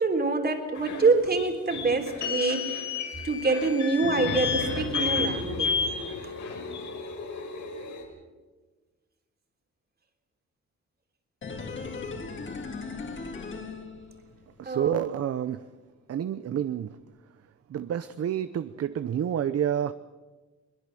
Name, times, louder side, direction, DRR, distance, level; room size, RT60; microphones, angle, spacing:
voice 1, 0.0-2.8 3.2-5.8 6.2-6.3 14.6-15.0, right 3 dB, 35° right, 5 dB, 3.4 m, -26 dB
sound 1, 0.7-8.0, left 5 dB, 80° left, 5.0 m, -31 dB
sound 2, 11.4-14.5 14.8-14.9, left 4 dB, 40° left, 3.0 m, -38 dB
voice 2, 14.6-15.6 16.1-16.9 17.7-19.9, right 9 dB, 55° right, 12 dB, 0.7 m, -29 dB
22.5 x 22.0 x 7.7 m, 1.3 s
wide cardioid pair, 150°, 29 cm